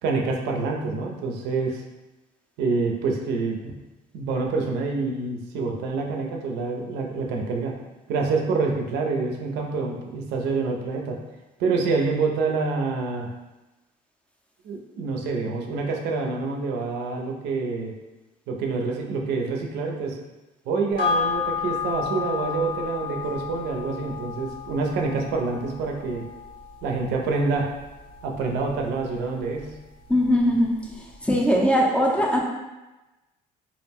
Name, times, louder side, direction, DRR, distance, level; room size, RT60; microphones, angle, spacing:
voice 1, 0.0-1.8 2.6-3.8 4.1-7.7 8.1-11.2 11.6-13.3 14.6-17.9 18.5-20.2 20.7-26.2 26.8-27.7 28.2-29.7, right 4 dB, 85° right, 1 dB, 0.5 m, -27 dB
sound 1, 21.0-29.7 30.1-30.2, left 6 dB, 85° left, 1.1 m, -32 dB
voice 2, 30.1-32.4, equal, 5° left, -1 dB, 0.4 m, -21 dB
2.4 x 2.0 x 3.4 m, 1.1 s
cardioid pair, 110°, 17 cm